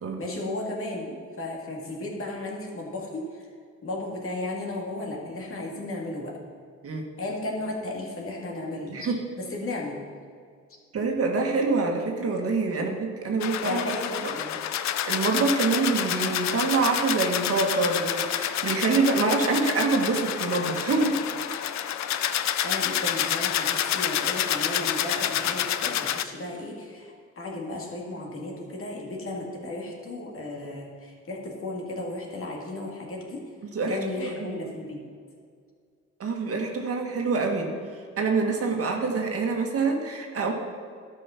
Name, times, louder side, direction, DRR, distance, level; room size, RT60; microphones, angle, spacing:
voice 1, 0.2-3.5 3.8-6.4 7.2-10.0 13.6-14.6 22.3-33.4 33.9-35.0 38.7-38.8, left 2 dB, 45° left, -1 dB, 2.2 m, -34 dB
voice 2, 8.9-9.2 10.9-13.0 13.2-13.8 15.1-21.2 33.7-34.6 36.2-37.7 38.2-40.5, right 4 dB, 50° right, 2 dB, 1.5 m, -25 dB
sound 1, 13.4-26.2, left 10 dB, 65° left, 0.6 m, -28 dB
12.5 x 5.4 x 5.7 m, 2.1 s
cardioid pair, 90°, 30 cm